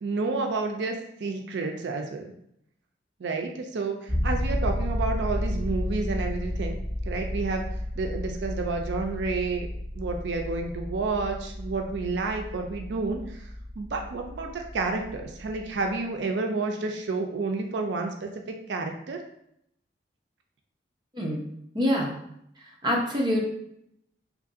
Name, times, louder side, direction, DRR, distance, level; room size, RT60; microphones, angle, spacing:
voice 1, 0.0-2.3 3.2-6.8 7.1-7.6 8.0-9.7 9.9-13.5 13.8-19.2, right 3 dB, 80° right, 3 dB, 0.4 m, -30 dB
sound 1, 4.1-16.0, left 1 dB, 25° left, 1.1 m, -32 dB
voice 2, 21.7-22.1 22.8-23.4, equal, 25° right, -2 dB, 0.7 m, -25 dB
3.1 x 2.5 x 3.7 m, 0.74 s
head